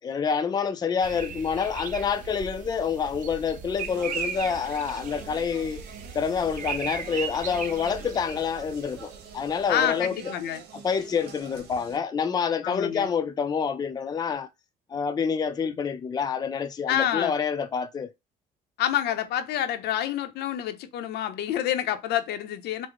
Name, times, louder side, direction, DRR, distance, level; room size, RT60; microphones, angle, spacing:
voice 1, 0.0-5.9 6.1-10.2 10.7-14.5 14.9-18.1, left 6 dB, 25° left, 0.4 m, -27 dB
sound 1, 1.0-9.8, right 6 dB, 50° right, 0.8 m, -38 dB
Speech, 3.8-12.0, right 7 dB, 80° right, 1.1 m, -45 dB
voice 2, 9.7-10.6 12.6-13.1 16.9-17.3 18.8-22.9, left 11 dB, 75° left, 0.7 m, -28 dB
4.6 x 2.1 x 3.9 m
cardioid pair, 110°, 17 cm